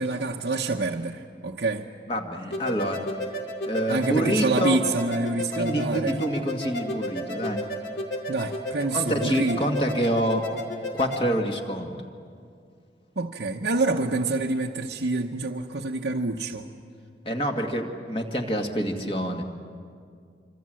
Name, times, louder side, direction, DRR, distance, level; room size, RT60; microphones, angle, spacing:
voice 1, 0.0-1.9 3.9-6.1 8.3-9.6 13.2-16.7, right 3 dB, 80° right, 0 dB, 1.0 m, -27 dB
voice 2, 2.1-3.0 3.7-4.8 5.5-7.6 8.9-10.5 10.9-12.0 17.2-19.4, equal, 30° left, 2 dB, 2.0 m, -27 dB
sound 1, 2.5-11.2, left 1 dB, 80° left, 2.8 m, -33 dB
26.0 x 25.5 x 7.7 m, 2.3 s
head